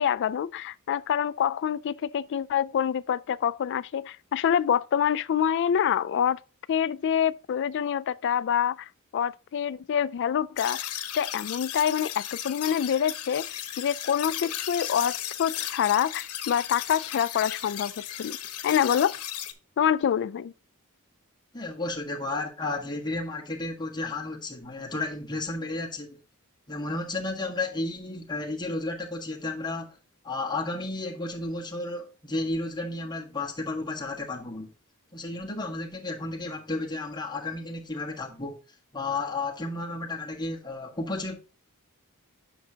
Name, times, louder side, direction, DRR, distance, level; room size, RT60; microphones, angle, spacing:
voice 1, 0.0-6.4 6.7-10.9 11.1-13.4 13.8-17.9 18.2-18.4 18.6-19.1 19.8-20.5, left 8 dB, 55° left, 0.3 m, -26 dB
sound 1, 10.6-19.5, left 11 dB, 90° left, 0.9 m, -35 dB
voice 2, 21.5-26.2 26.7-30.0 30.2-34.7 35.1-38.6 38.9-41.4, left 2 dB, 20° left, 1.5 m, -32 dB
8.7 x 6.1 x 2.8 m
head